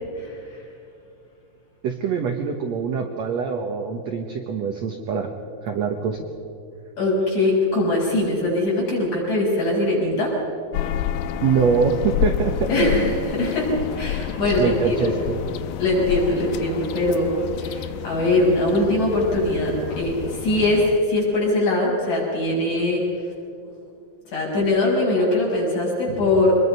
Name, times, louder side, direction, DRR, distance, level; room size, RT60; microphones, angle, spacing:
voice 1, 1.8-5.3 5.6-6.2 11.4-12.7 14.6-15.4, right 6 dB, 65° right, 3 dB, 1.8 m, -24 dB
voice 2, 7.0-10.3 12.7-13.7 14.0-15.1 15.8-17.3 17.6-23.0 24.3-26.6, left 1 dB, 45° left, -4 dB, 7.4 m, -21 dB
sound 1, 10.7-21.0, left 10 dB, 75° left, 2.4 m, -29 dB
25.0 x 21.0 x 5.5 m, 2.6 s
omnidirectional pair, 4.5 m